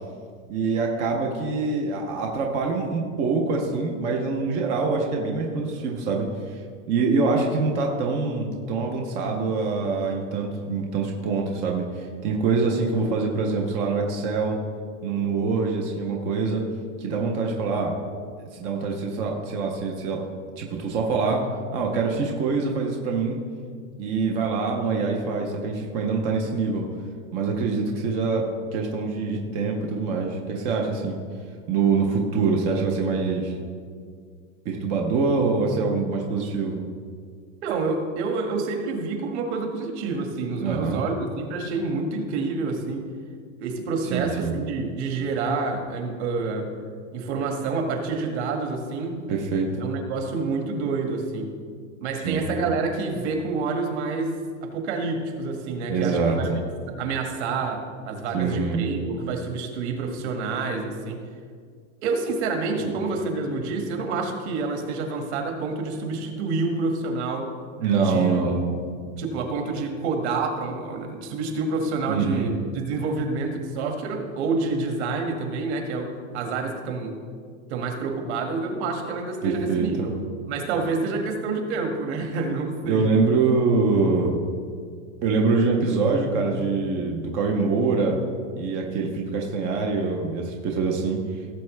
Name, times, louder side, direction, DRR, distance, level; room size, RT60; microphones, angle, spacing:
voice 1, 0.5-6.6 6.9-14.6 15.0-16.6 17.0-17.9 18.6-20.3 20.6-21.5 21.7-23.4 24.0-26.9 27.3-28.4 28.7-31.2 31.7-33.6 34.7-36.9 40.6-41.0 44.0-44.5 49.3-49.9 52.2-52.5 55.9-56.6 58.3-58.8 62.8-62.9 67.8-68.6 72.1-72.5 79.4-80.1 82.8-84.4 85.2-88.1 88.6-91.2, right 4 dB, 20° right, 0 dB, 0.4 m, -24 dB
voice 2, 37.6-43.1 43.6-46.7 47.1-49.2 49.8-51.5 52.0-54.3 54.6-61.2 62.0-67.5 68.0-68.5 69.2-77.2 77.7-80.1 80.5-83.1, right 4 dB, 55° right, 3 dB, 1.8 m, -28 dB
17.0 x 7.4 x 3.2 m, 2.1 s
supercardioid pair, 170°, 39 cm